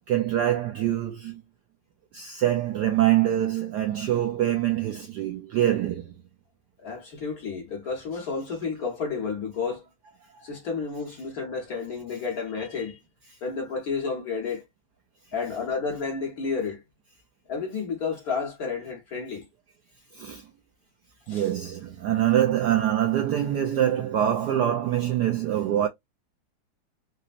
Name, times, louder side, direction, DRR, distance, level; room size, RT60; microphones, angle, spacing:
voice 1, 0.1-1.4 2.1-6.1 20.1-20.5 21.3-25.9, right 11 dB, 80° right, 0.9 m, -24 dB
voice 2, 6.8-9.8 10.4-13.0 13.4-14.6 15.3-16.8 17.5-19.5 21.3-21.5, left 5 dB, 55° left, 1.3 m, -31 dB
4.1 x 2.0 x 2.4 m
omnidirectional pair, 2.3 m